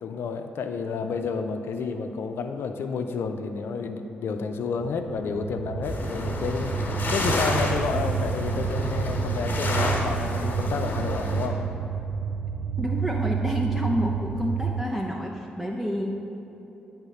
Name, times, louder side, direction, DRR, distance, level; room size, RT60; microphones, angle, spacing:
voice 1, 0.0-11.6, left 5 dB, 70° left, 6 dB, 0.4 m, -30 dB
sound 1, 4.8-14.8, right 6 dB, 70° right, 0.3 m, -30 dB
sound 2, 5.8-11.5, left 2 dB, 50° left, 1.2 m, -30 dB
voice 2, 12.8-16.1, equal, 5° right, -2 dB, 0.7 m, -29 dB
7.9 x 3.5 x 5.6 m, 3.0 s
supercardioid pair, 45°, 4 cm